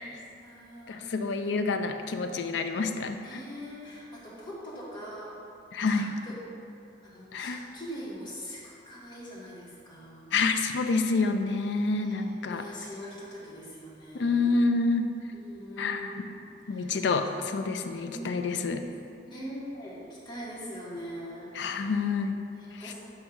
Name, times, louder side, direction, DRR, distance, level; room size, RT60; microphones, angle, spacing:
voice 1, 0.0-1.3 3.2-5.4 5.8-6.3 7.0-10.3 12.0-14.6 15.3-16.3 16.6-17.1 17.8-18.3 19.2-21.9 22.5-22.9, equal, 25° left, -7 dB, 1.4 m, -43 dB
voice 2, 0.9-3.4 5.7-6.0 7.3-7.6 10.3-12.6 14.1-15.1 15.8-16.1 16.7-18.8 21.5-22.4 22.8-22.9, left 3 dB, 70° left, 7 dB, 0.4 m, -28 dB
7.6 x 2.7 x 5.8 m, 2.6 s
head